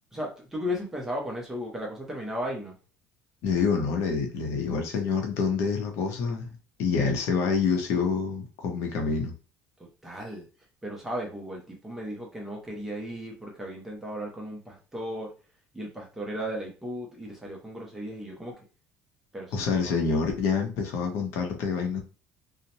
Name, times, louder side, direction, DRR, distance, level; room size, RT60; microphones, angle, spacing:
voice 1, 0.1-2.8 9.8-10.5 10.8-15.3 15.7-18.5 19.3-20.0, equal, 5° right, -1 dB, 0.6 m, -35 dB
voice 2, 3.4-6.5 6.8-9.3 19.5-22.0, left 5 dB, 60° left, 3 dB, 0.7 m, -27 dB
2.7 x 2.1 x 2.7 m, 0.35 s
cardioid pair, 170°, 5 cm